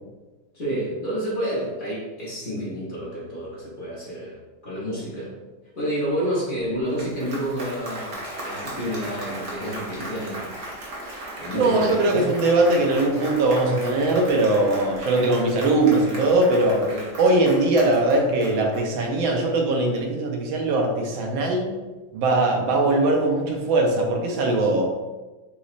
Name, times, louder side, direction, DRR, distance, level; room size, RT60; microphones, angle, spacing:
voice 1, 0.5-4.4 4.6-5.3 5.8-10.5 11.4-12.3 16.8-17.0, equal, 45° left, -7 dB, 0.6 m, -29 dB
Applause, 6.7-19.3, right 1 dB, 55° right, 0.7 m, -37 dB
voice 2, 11.5-16.9 17.2-21.7 22.1-24.9, right 2 dB, 85° right, 1 dB, 1.4 m, -21 dB
4.0 x 3.0 x 2.4 m, 1.2 s
omnidirectional pair, 2.2 m